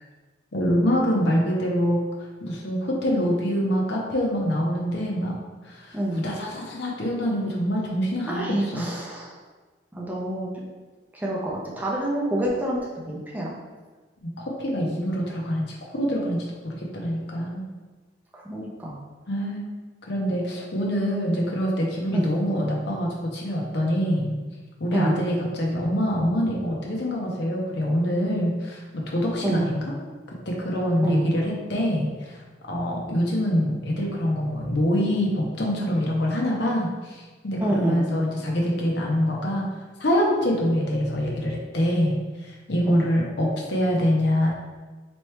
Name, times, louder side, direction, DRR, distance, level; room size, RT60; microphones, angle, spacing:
voice 1, 0.5-2.0 2.4-5.4 5.7-6.0 6.2-8.9 14.2-15.7 15.9-17.6 19.3-19.6 20.0-24.4 24.8-29.9 30.5-32.4 32.7-39.6 40.0-44.5, equal, 65° left, -2 dB, 0.8 m, -25 dB
voice 2, 5.9-6.2 8.3-9.4 9.9-10.5 11.1-13.6 18.3-19.0 22.1-22.3 24.9-25.2 29.4-29.6 31.0-31.3 37.6-38.1 42.9-43.1, right 1 dB, 10° right, -4 dB, 0.6 m, -27 dB
4.3 x 3.1 x 3.2 m, 1.3 s
head